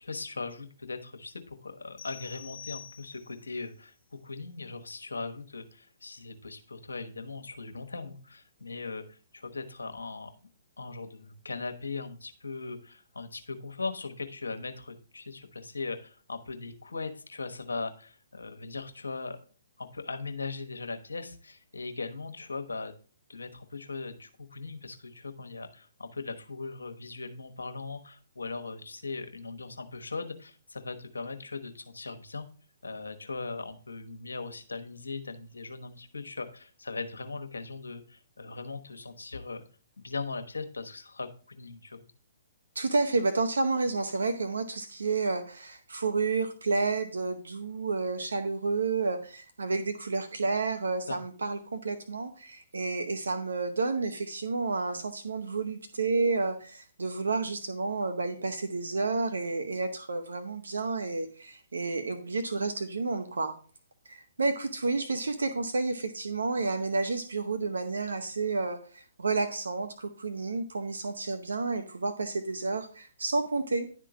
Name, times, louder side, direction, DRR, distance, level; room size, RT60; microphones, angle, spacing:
voice 1, 0.0-10.3 10.8-19.4 19.8-22.9 23.3-32.5 32.8-39.6 40.0-42.1 51.1-51.2, left 3 dB, 85° left, 5 dB, 1.2 m, -39 dB
sound 1, 2.0-3.5, left 8 dB, 50° left, 1.2 m, -46 dB
voice 2, 42.7-63.5 64.1-73.9, right 3 dB, 80° right, 9 dB, 0.8 m, -30 dB
11.0 x 3.7 x 4.8 m, 0.40 s
hypercardioid pair, 135°, 0 cm